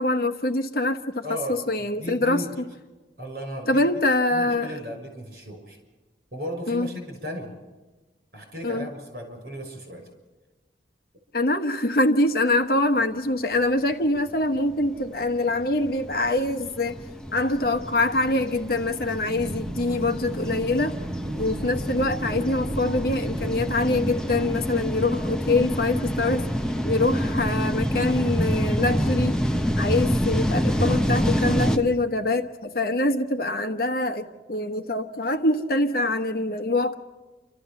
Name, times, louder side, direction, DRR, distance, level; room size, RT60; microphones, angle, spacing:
voice 1, 0.0-1.2 1.5-2.4 3.7-4.7 6.7-6.9 8.6-8.9 11.3-17.0 17.3-20.9 21.4-26.5 26.8-29.4 29.8-37.0, left 2 dB, 55° left, 7 dB, 1.2 m, -24 dB
voice 2, 1.2-2.5 3.2-3.9 4.3-5.8 6.3-7.5 8.3-10.1, equal, 55° right, 3 dB, 6.4 m, -35 dB
sound 1, 14.0-31.8, equal, 5° left, 0.9 m, -27 dB
sound 2, 19.3-24.3, right 1 dB, 25° right, 0.9 m, -35 dB
29.0 x 13.5 x 7.1 m, 1.2 s
head